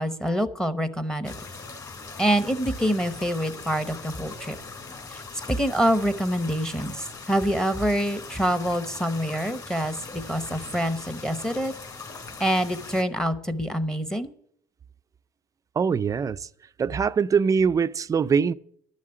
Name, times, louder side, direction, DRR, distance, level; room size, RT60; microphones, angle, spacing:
voice 1, 0.0-1.3 2.2-4.6 5.1-5.2 5.5-11.7 12.4-14.3, equal, 5° left, 0.9 m, -26 dB
sound 1, 1.2-13.0, left 4 dB, 25° left, 2.4 m, -41 dB
voice 2, 15.8-16.5 16.8-18.5, right 6 dB, 25° right, 0.4 m, -23 dB
11.5 x 7.3 x 8.9 m
cardioid pair, 125°, 14 cm